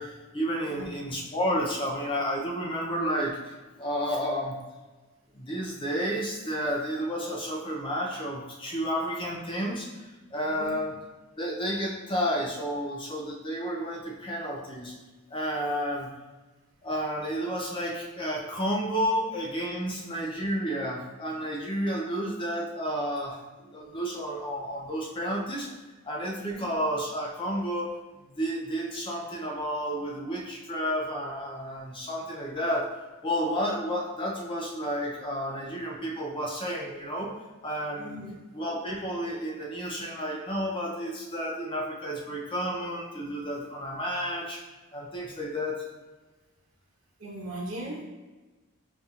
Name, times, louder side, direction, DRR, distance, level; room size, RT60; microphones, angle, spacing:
voice 1, 0.0-4.6 5.3-10.0 10.3-10.9 11.4-14.9 15.3-16.1 16.8-25.7 26.0-27.9 28.3-32.9 33.2-37.3 37.6-38.2 38.5-44.6 44.9-45.8, equal, 25° left, -1 dB, 0.5 m, -31 dB
voice 2, 26.4-26.7 38.0-38.4 47.2-48.0, right 1 dB, 80° right, -2 dB, 0.9 m, -38 dB
5.2 x 2.7 x 2.4 m, 1.2 s
head